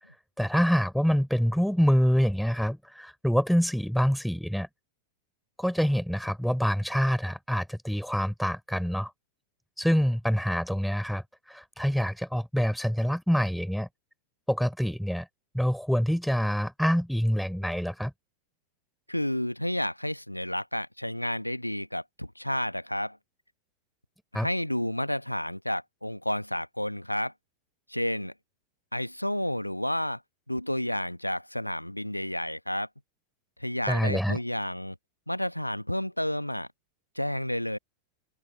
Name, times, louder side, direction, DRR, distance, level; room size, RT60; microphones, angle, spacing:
voice 1, 0.4-4.7 5.6-9.1 9.8-13.9 14.5-15.3 15.5-18.1 24.3-24.5 33.9-34.4, equal, ahead, 4.3 m, -26 dB
voice 2, 19.1-23.2 24.3-27.3 27.9-28.3 28.9-30.2 30.5-32.9 33.6-35.0 35.3-36.7 37.1-37.8, left 1 dB, 90° left, 1.3 m, -31 dB
open air
figure-of-eight pair, 90°, 0 cm